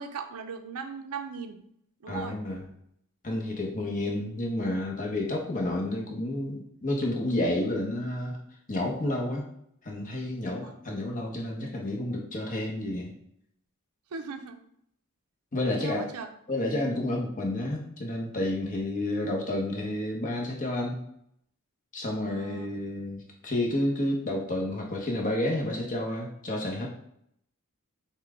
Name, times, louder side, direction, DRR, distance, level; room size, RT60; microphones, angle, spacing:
voice 1, 0.0-1.6 2.0-2.4 10.5-10.8 14.1-14.6 15.6-16.3 22.2-22.8, right 5 dB, 85° right, 7 dB, 0.5 m, -39 dB
voice 2, 2.1-2.7 3.2-8.4 8.7-9.5 9.8-13.1 15.5-16.1 16.5-21.0 21.9-26.9, left 1 dB, 35° left, 0 dB, 0.9 m, -30 dB
5.6 x 2.2 x 3.6 m, 0.73 s
head